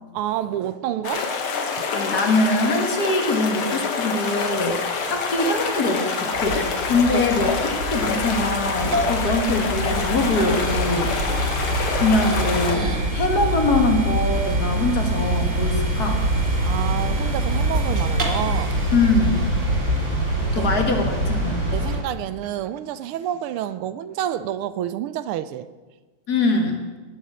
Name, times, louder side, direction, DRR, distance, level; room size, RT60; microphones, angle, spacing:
voice 1, 0.1-1.3 1.8-1.9 7.1-7.5 16.6-18.8 19.7-19.8 20.5-20.7 21.7-25.7, right 11 dB, 80° right, 14 dB, 1.5 m, -28 dB
sound 1, 1.0-12.8, left 5 dB, 70° left, 2.3 m, -26 dB
voice 2, 1.9-4.8 5.1-11.6 12.0-16.2 18.9-19.4 20.6-21.7 26.3-26.8, left 2 dB, 45° left, 3 dB, 2.0 m, -23 dB
sound 2, 5.6-20.6, right 1 dB, 35° right, 2.2 m, -35 dB
sound 3, 6.3-22.0, right 1 dB, 65° right, 5.2 m, -25 dB
19.5 x 7.1 x 6.2 m, 1.3 s
omnidirectional pair, 2.4 m